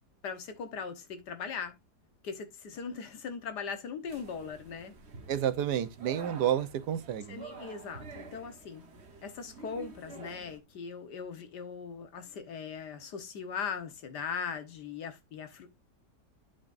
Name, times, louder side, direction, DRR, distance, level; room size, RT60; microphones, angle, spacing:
voice 1, 0.2-1.8 2.2-4.9 7.3-8.8 9.2-15.7, left 6 dB, 85° left, 1.8 m, -39 dB
sound 1, 4.1-10.6, right 4 dB, 45° right, 1.3 m, -49 dB
voice 2, 5.3-7.4, right 10 dB, 85° right, 1.5 m, -30 dB
11.0 x 5.0 x 2.6 m
omnidirectional pair, 1.7 m